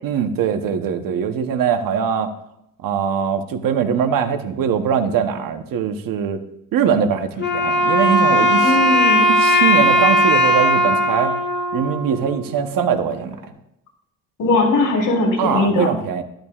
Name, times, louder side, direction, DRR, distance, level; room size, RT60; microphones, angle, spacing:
voice 1, 0.0-2.3 2.8-6.4 6.7-8.8 9.4-11.3 11.7-13.4 15.4-16.2, right 7 dB, 85° right, 8 dB, 1.0 m, -21 dB
Wind instrument woodwind instrument, 7.4-12.6, equal, 35° left, 1.7 m, -17 dB
voice 2, 8.6-9.3 14.4-15.9, left 2 dB, 70° left, -2 dB, 3.9 m, -19 dB
12.5 x 11.5 x 2.4 m, 0.80 s
cardioid pair, 140°, 33 cm